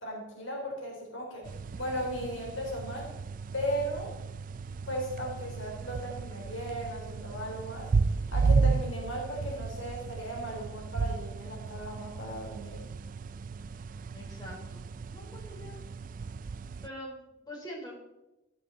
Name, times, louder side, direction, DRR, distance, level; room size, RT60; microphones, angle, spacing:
voice 1, 0.0-3.1 3.5-4.1 4.9-7.9 8.3-12.9, equal, 70° left, -1 dB, 3.7 m, -36 dB
sound 1, 1.4-16.9, right 4 dB, 40° right, 0.3 m, -33 dB
voice 2, 14.1-14.8 15.1-15.8 16.8-17.9, equal, 20° left, -3 dB, 3.9 m, -44 dB
14.5 x 10.0 x 4.0 m, 0.96 s
head